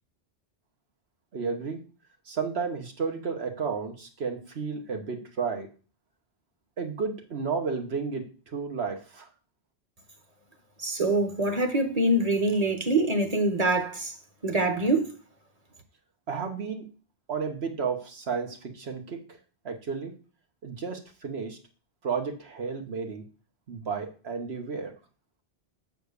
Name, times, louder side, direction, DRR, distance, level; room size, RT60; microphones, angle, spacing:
voice 1, 1.3-1.8 2.3-5.7 6.8-9.3 16.3-16.8 17.3-19.2 19.6-20.1 20.6-21.6 22.0-23.2 23.7-24.9, right 5 dB, 80° right, 1.5 m, -32 dB
voice 2, 10.8-14.1 14.4-15.1, right 2 dB, 40° right, 1.0 m, -25 dB
7.0 x 4.4 x 6.6 m
omnidirectional pair, 1.1 m